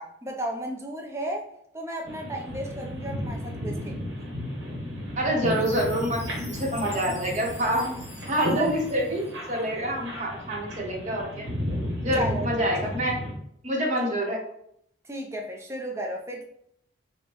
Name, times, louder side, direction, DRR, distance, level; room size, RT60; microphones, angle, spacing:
voice 1, 0.0-1.5 1.7-4.3 12.1-12.5 15.0-16.4, right 1 dB, 15° right, 1 dB, 0.4 m, -34 dB
sound 1, 2.0-13.3, equal, 85° right, 1.1 m, -34 dB
voice 2, 5.2-8.0 8.3-11.4 12.0-13.2 13.6-14.4, equal, 40° right, 0 dB, 0.8 m, -27 dB
Chime, 5.4-9.7, left 2 dB, 35° left, 1.5 m, -46 dB
5.2 x 2.1 x 2.9 m, 0.72 s
head